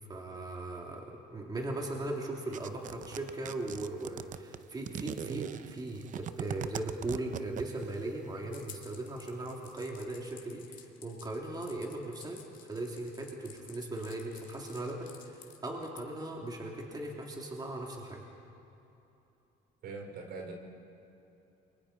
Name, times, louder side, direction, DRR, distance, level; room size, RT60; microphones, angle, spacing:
voice 1, 0.1-12.4 12.7-18.2, right 2 dB, 25° right, -1 dB, 3.2 m, -38 dB
sound 1, 2.5-8.0, right 9 dB, 50° right, 0.7 m, -40 dB
sound 2, 8.5-16.0, left 8 dB, 50° left, 2.4 m, -53 dB
voice 2, 19.8-20.5, right 4 dB, 70° right, 2 dB, 4.1 m, -42 dB
29.0 x 24.0 x 4.4 m, 3.0 s
cardioid pair, 110°, 17 cm